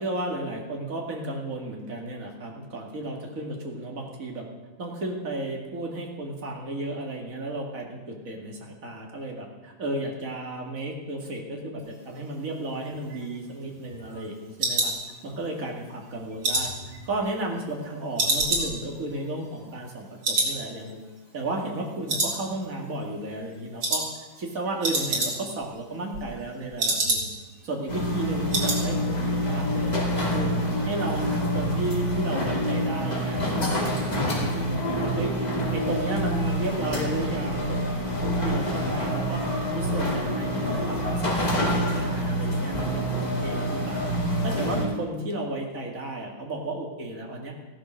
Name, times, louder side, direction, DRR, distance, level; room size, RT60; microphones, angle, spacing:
voice 1, 0.0-4.5 4.8-14.9 15.2-16.7 17.1-21.0 21.3-24.0 24.4-27.3 27.6-30.5 30.8-35.3 35.7-39.4 39.7-44.1 44.4-47.5, right 2 dB, 45° right, 0 dB, 2.5 m, -33 dB
sound 1, 12.9-15.7 16.0-17.8 18.2-20.0 20.2-20.6 20.9-21.0 21.4-21.8 22.1-22.9 23.2-23.4 23.8-24.1 24.4-24.5 24.7-25.6 25.9-27.5 27.9-28.0 28.2-28.8 29.1-29.4 29.7-29.8, right 2 dB, 85° right, 3.5 m, -28 dB
sound 2, 27.9-44.8, equal, 20° left, 2.6 m, -27 dB
15.0 x 10.5 x 6.3 m, 1.2 s
omnidirectional pair, 2.1 m